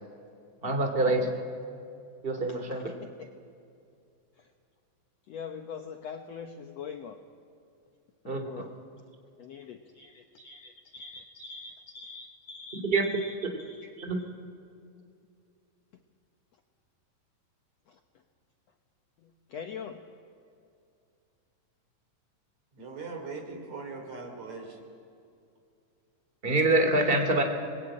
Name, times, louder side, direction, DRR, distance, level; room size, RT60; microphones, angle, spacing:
voice 1, 0.6-1.3 2.2-2.9 8.2-8.5 12.9-13.0 14.0-14.2 26.4-27.4, right 2 dB, 20° right, 5 dB, 2.1 m, -25 dB
voice 2, 2.5-3.3 4.4-4.5 5.3-7.2 8.2-9.0 9.4-13.9 17.9-18.0 19.2-20.0, left 6 dB, 65° left, 5 dB, 1.7 m, -44 dB
voice 3, 22.8-24.8, right 4 dB, 50° right, 4 dB, 4.2 m, -40 dB
29.5 x 20.5 x 8.8 m, 2.5 s
omnidirectional pair, 4.0 m